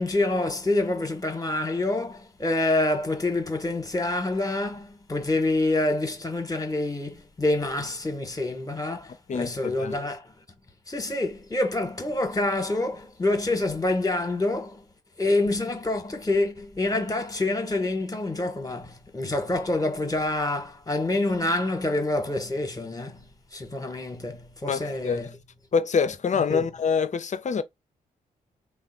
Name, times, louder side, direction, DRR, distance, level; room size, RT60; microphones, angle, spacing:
voice 1, 0.0-10.3 10.9-14.8 15.2-25.4 26.5-26.7, left 2 dB, 20° left, 0.9 m, -27 dB
voice 2, 9.3-9.9 24.7-25.3 25.7-27.6, left 6 dB, 45° left, 0.4 m, -26 dB
3.2 x 2.2 x 2.5 m
supercardioid pair, 45°, 17 cm